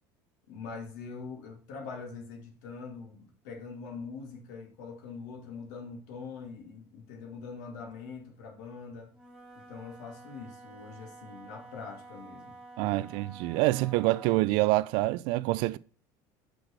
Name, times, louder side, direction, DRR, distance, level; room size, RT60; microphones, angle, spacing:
voice 1, 0.5-9.1 9.6-13.1, left 5 dB, 85° left, 2.3 m, -43 dB
Wind instrument woodwind instrument, 9.1-14.5, right 2 dB, 5° right, 2.2 m, -50 dB
voice 2, 12.8-15.8, right 19 dB, 70° right, 0.4 m, -26 dB
6.1 x 4.7 x 6.5 m
cardioid pair, 145°, 9 cm